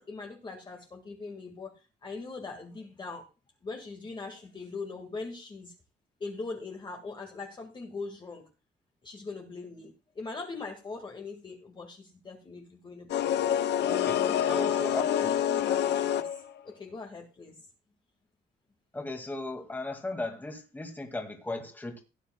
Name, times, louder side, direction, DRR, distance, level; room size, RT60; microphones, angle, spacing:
voice 1, 0.0-3.3 3.6-5.7 6.2-8.4 9.0-13.5 14.2-14.8 15.2-17.6, left 3 dB, 25° left, 1 dB, 1.8 m, -41 dB
sound 1, 13.1-16.6, left 10 dB, 85° left, 0.9 m, -27 dB
voice 2, 13.9-15.4 18.9-22.0, left 2 dB, 10° left, 3 dB, 2.0 m, -36 dB
17.0 x 10.0 x 2.2 m, 0.30 s
wide cardioid pair, 175°, 17 cm